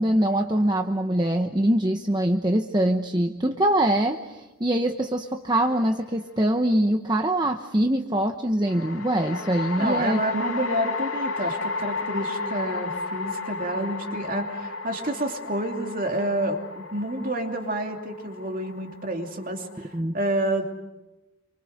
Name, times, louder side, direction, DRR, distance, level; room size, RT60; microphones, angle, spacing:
voice 1, 0.0-10.2 19.9-20.2, right 1 dB, 20° right, 4 dB, 1.0 m, -23 dB
sound 1, 5.5-6.2 8.7-20.0, left 3 dB, 85° left, 2.2 m, -33 dB
voice 2, 9.8-20.8, right 1 dB, 40° right, 3 dB, 2.8 m, -29 dB
28.0 x 25.0 x 6.5 m, 1.0 s
head